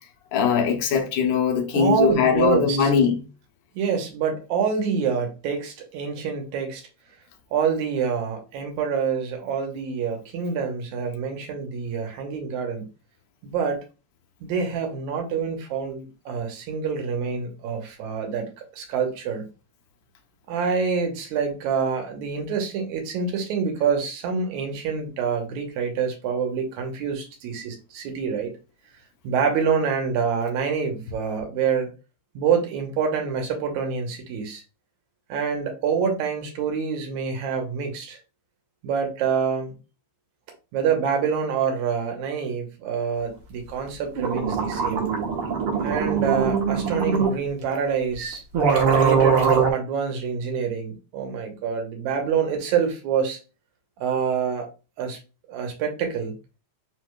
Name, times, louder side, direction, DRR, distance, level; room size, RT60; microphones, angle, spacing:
voice 1, 0.3-3.2, left 6 dB, 65° left, 1.2 m, -21 dB
voice 2, 1.7-2.9 3.8-6.9 7.5-12.9 13.4-13.8 14.4-18.5 18.7-19.4 20.5-28.5 29.2-31.9 32.3-34.6 35.3-38.2 38.8-39.7 40.7-45.1 45.8-48.4 48.9-53.4 54.0-54.7 55.0-55.2 55.5-56.3, right 6 dB, 80° right, 2.3 m, -26 dB
sound 1, 43.9-44.0 44.2-47.4 48.1-48.2 48.5-49.7, right 6 dB, 60° right, 1.8 m, -22 dB
4.9 x 4.7 x 2.3 m
omnidirectional pair, 3.3 m